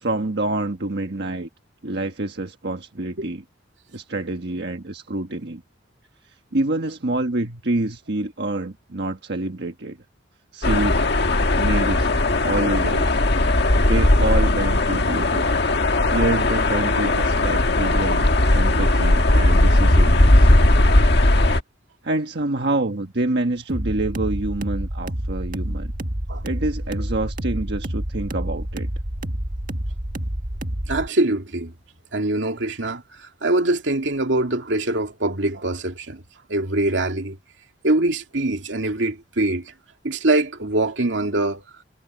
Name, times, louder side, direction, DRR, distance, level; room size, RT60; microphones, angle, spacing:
voice 1, 0.0-1.5 1.8-3.4 3.9-5.6 6.5-10.0 10.5-11.0 11.5-12.1 12.4-13.2 13.7-15.5 16.1-20.5 22.0-25.9 26.4-28.9, right 2 dB, 65° right, 1.5 m, -27 dB
sound 1, 10.6-21.6, left 1 dB, 60° left, 1.8 m, -18 dB
sound 2, 23.7-31.1, right 1 dB, 50° right, 1.8 m, -28 dB
voice 2, 30.9-31.7 32.1-36.2 36.5-37.4 37.8-39.7 40.0-41.6, right 2 dB, 80° right, 2.4 m, -23 dB
head